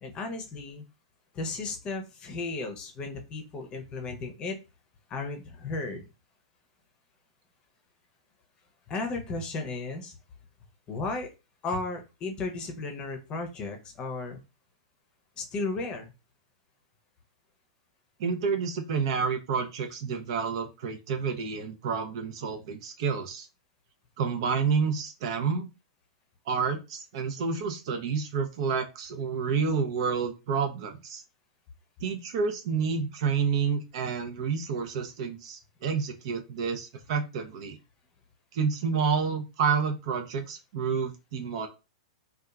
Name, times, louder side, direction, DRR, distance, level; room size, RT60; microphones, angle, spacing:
voice 1, 0.0-0.8 1.3-4.6 5.1-6.0 8.9-10.2 10.9-11.3 11.6-14.4 15.4-16.1, left 3 dB, 25° left, 5 dB, 0.7 m, -34 dB
voice 2, 18.2-23.5 24.2-25.7 26.5-31.2 32.0-37.8 38.5-41.7, right 6 dB, 60° right, 6 dB, 0.6 m, -29 dB
2.9 x 2.3 x 2.3 m, 0.28 s
hypercardioid pair, 130°, 3 cm